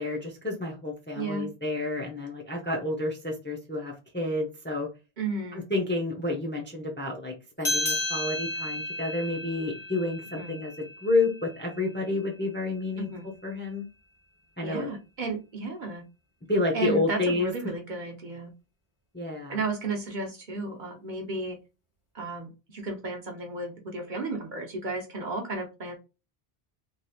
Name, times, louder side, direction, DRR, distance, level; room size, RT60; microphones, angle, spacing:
voice 1, 0.0-4.9 5.5-13.1 13.4-13.8 14.6-14.9 16.5-17.5 19.1-19.6, left 2 dB, 15° left, 1 dB, 0.6 m, -30 dB
voice 2, 1.1-1.5 5.2-5.6 10.4-10.5 13.0-13.3 14.6-16.0 16.7-18.5 19.5-21.6 22.1-25.9, right 3 dB, 50° right, 2 dB, 0.9 m, -33 dB
sound 1, 7.6-12.5, left 1 dB, 30° left, 1.0 m, -34 dB
3.2 x 2.8 x 2.3 m, 0.28 s
omnidirectional pair, 1.0 m